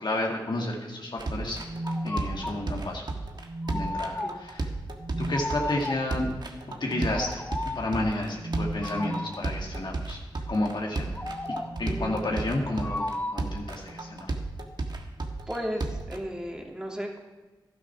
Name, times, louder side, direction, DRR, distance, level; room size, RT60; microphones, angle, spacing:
voice 1, 0.0-1.6 2.0-3.0 3.7-4.7 5.2-6.3 6.8-7.4 7.8-10.2 10.5-11.2 11.8-14.3, left 1 dB, 60° left, 0 dB, 2.1 m, -31 dB
sound 1, 1.2-16.2, right 3 dB, 55° right, 1.5 m, -34 dB
sound 2, 1.4-2.7 3.4-4.1 4.9-5.4 6.8-7.2 8.3-9.4 10.9-12.7 13.8-14.2 15.5-15.7, right 1 dB, 70° right, 1.8 m, -37 dB
sound 3, 1.8-2.7 3.6-4.6 5.3-6.2 7.1-7.9 8.8-9.5 11.1-11.9 12.8-13.6, left 2 dB, 20° left, 0.8 m, -34 dB
voice 2, 11.8-12.5 15.5-17.2, equal, 10° right, 0 dB, 2.7 m, -35 dB
11.5 x 9.3 x 5.9 m, 1.2 s
cardioid pair, 40°, 9 cm